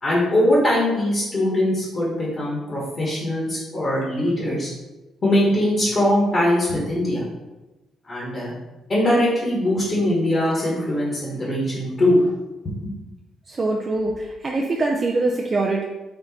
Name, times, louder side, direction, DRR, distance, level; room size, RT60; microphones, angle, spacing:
voice 1, 0.0-4.7 5.2-7.2 8.1-8.5 8.9-12.2 12.8-12.9, left 1 dB, 40° left, -6 dB, 1.4 m, -21 dB
voice 2, 13.5-15.8, right 2 dB, 35° right, 0 dB, 0.5 m, -23 dB
4.4 x 2.5 x 4.3 m, 1.1 s
cardioid pair, 90°, 0 cm